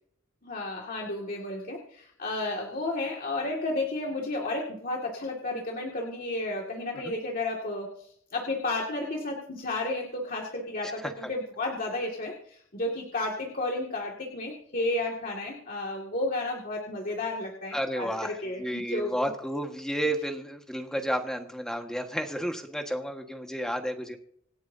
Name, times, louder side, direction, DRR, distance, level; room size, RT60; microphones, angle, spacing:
voice 1, 0.4-19.2, left 2 dB, 45° left, -1 dB, 2.2 m, -32 dB
voice 2, 17.7-24.2, equal, 5° left, 4 dB, 1.5 m, -32 dB
27.0 x 9.3 x 2.8 m, 0.65 s
head